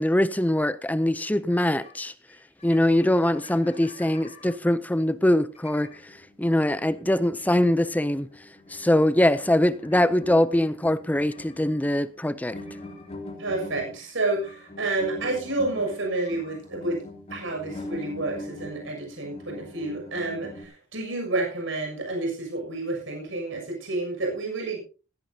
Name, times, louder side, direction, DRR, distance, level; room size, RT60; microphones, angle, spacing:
voice 1, 0.0-2.1 2.6-5.9 6.4-8.3 8.7-12.6, left 1 dB, 10° left, 0.5 m, -22 dB
sound 1, 1.8-1.9 2.3-2.4 2.6-4.5 5.5-20.6, left 2 dB, 35° left, 3.5 m, -43 dB
voice 2, 13.4-17.0 17.3-24.8, right 2 dB, 70° right, 6.8 m, -29 dB
16.5 x 16.5 x 2.8 m
head